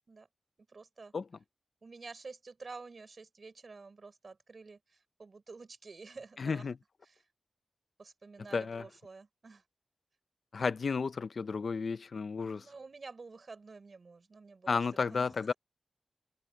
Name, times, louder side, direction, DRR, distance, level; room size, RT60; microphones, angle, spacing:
voice 1, 0.7-1.1 1.8-6.8 7.0-7.2 8.0-9.6 12.4-15.5, right 4 dB, 45° right, 6.7 m, -50 dB
voice 2, 6.4-6.7 8.5-8.8 10.5-12.6 14.7-15.5, left 5 dB, 60° left, 0.7 m, -32 dB
wide cardioid pair, 145°, 0 cm